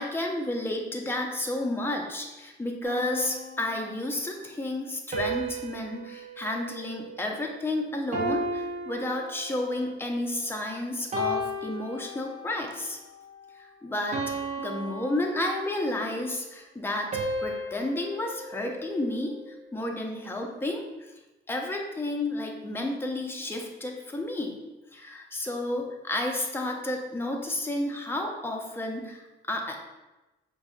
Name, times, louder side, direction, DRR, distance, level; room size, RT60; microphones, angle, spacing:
voice 1, 0.0-13.0 13.6-17.1 17.4-21.1 21.5-24.6 24.9-29.8, left 1 dB, 10° left, 1 dB, 0.6 m, -31 dB
sound 1, 2.8-4.1 5.1-7.6 8.1-9.8 10.4-10.7 11.1-12.7 13.1-13.4 14.1-16.0 17.1-19.5, right 1 dB, 35° right, 0.7 m, -35 dB
5.5 x 2.6 x 2.4 m, 1.1 s
cardioid pair, 90°, 20 cm